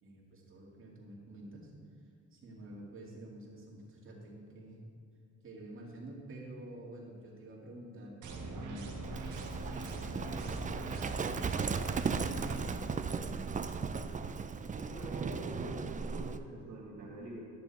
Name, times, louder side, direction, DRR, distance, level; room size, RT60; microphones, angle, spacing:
voice 1, 0.0-1.7 2.3-4.8 5.4-9.0 9.8-13.7, right 1 dB, 45° right, -4 dB, 2.4 m, -49 dB
sound 1, 8.2-12.6, right 2 dB, 80° right, 1.4 m, -42 dB
Livestock farm animals working animals, 9.0-16.4, right 5 dB, 25° right, 0.4 m, -36 dB
voice 2, 14.7-17.5, right 1 dB, 60° right, -6 dB, 1.8 m, -45 dB
11.5 x 6.9 x 4.3 m, 2.2 s
cardioid pair, 90°, 30 cm